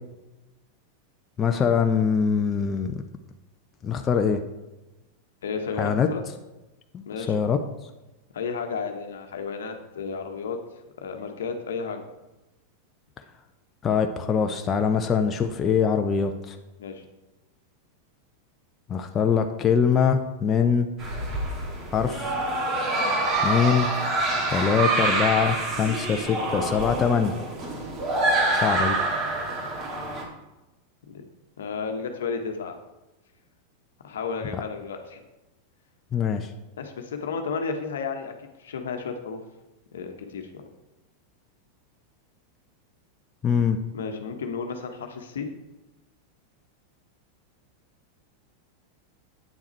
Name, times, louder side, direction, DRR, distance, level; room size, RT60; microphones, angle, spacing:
voice 1, 1.4-3.0 3.8-4.4 5.8-6.1 6.9-7.6 13.8-16.6 18.9-20.9 21.9-22.4 23.4-23.9 24.5-27.4 28.6-29.0 34.5-34.6 36.1-36.5 43.4-43.8, left 6 dB, 30° left, 5 dB, 0.7 m, -23 dB
voice 2, 5.4-6.3 7.1-7.3 8.3-10.6 11.0-12.0 16.8-17.0 31.1-31.2 31.6-32.7 34.0-35.2 36.8-38.3 38.6-39.4 39.9-40.6 43.9-45.5, left 5 dB, 75° left, 5 dB, 1.1 m, -32 dB
sound 1, 21.0-30.2, right 2 dB, 35° right, 2.4 m, -26 dB
9.0 x 7.2 x 4.5 m, 1.0 s
hypercardioid pair, 95°, 0 cm